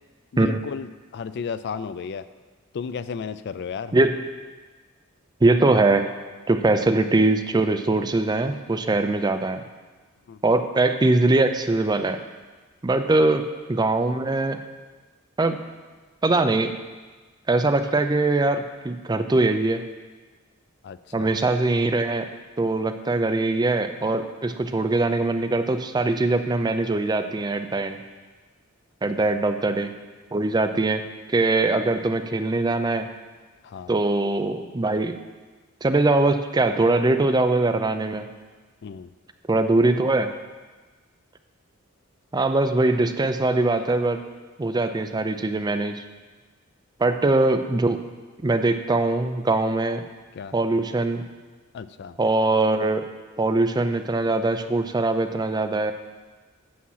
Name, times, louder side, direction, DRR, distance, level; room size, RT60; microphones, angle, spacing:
voice 1, 0.3-2.3 2.7-4.0 10.3-10.4 20.8-21.4 29.1-29.3 33.6-33.9 38.8-39.1 50.3-50.5 51.7-52.2, left 6 dB, 55° left, 14 dB, 0.4 m, -34 dB
voice 2, 5.4-6.1 6.5-9.6 10.4-12.2 12.8-13.4 13.7-14.6 15.4-15.6 16.2-16.7 17.5-19.8 21.1-22.3 22.6-28.0 29.0-29.9 30.3-31.0 31.3-33.1 33.9-35.2 35.8-38.3 39.5-40.3 42.3-44.2 44.6-46.0 47.0-48.0 48.4-50.1 50.5-51.2 52.2-53.0 53.4-55.9, right 2 dB, 20° right, 8 dB, 0.5 m, -22 dB
8.5 x 7.4 x 5.7 m, 1.3 s
head